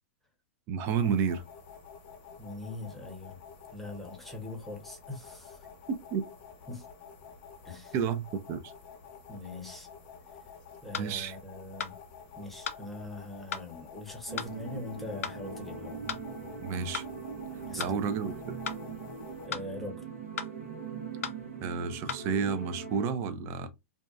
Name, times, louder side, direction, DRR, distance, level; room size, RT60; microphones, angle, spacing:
voice 1, 0.7-1.4 5.9-6.2 7.9-8.2 8.5-8.7 11.0-11.4 16.6-17.1 17.8-18.6 21.6-23.7, right 6 dB, 35° right, 0.5 m, -31 dB
sound 1, 0.8-19.5, left 6 dB, 45° left, 0.7 m, -50 dB
voice 2, 2.4-3.4 3.7-5.7 6.7-6.9 7.6-7.9 9.3-9.9 10.8-12.0 12.4-16.0 17.6-18.0 19.4-20.0, left 2 dB, 5° left, 0.8 m, -42 dB
sound 2, 10.9-11.1 11.8-12.0 12.7-12.8 13.5-13.7 14.4-14.5 15.2-15.4 16.1-16.3 16.9-17.1 17.8-18.0 18.7-18.8 19.5-19.7 20.4-20.5 21.2-21.4 22.1-22.2, left 7 dB, 75° left, 0.4 m, -36 dB
sound 3, 14.3-23.1, right 5 dB, 75° right, 0.9 m, -41 dB
2.6 x 2.1 x 2.3 m
hypercardioid pair, 120°, 7 cm